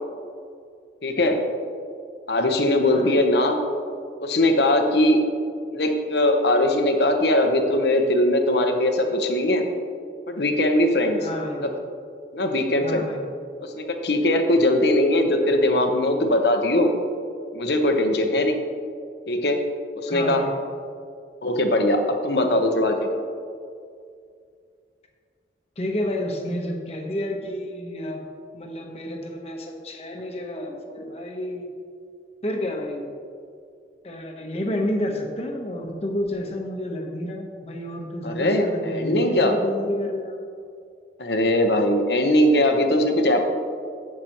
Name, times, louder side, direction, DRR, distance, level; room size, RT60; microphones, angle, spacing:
voice 1, 1.0-1.4 2.3-3.6 4.2-5.2 5.7-9.7 10.3-11.2 11.6-11.8 12.3-13.0 13.6-16.9 17.5-18.5 19.3-19.7 20.0-20.4 21.4-23.0 38.2-39.5 41.2-43.4, left 1 dB, 70° left, 5 dB, 1.0 m, -20 dB
voice 2, 2.8-3.3 11.2-11.7 12.8-13.3 20.1-20.5 25.8-28.3 28.5-31.7 32.4-33.1 34.0-40.4, left 1 dB, 35° left, 2 dB, 1.0 m, -30 dB
11.0 x 8.4 x 3.0 m, 2.3 s
head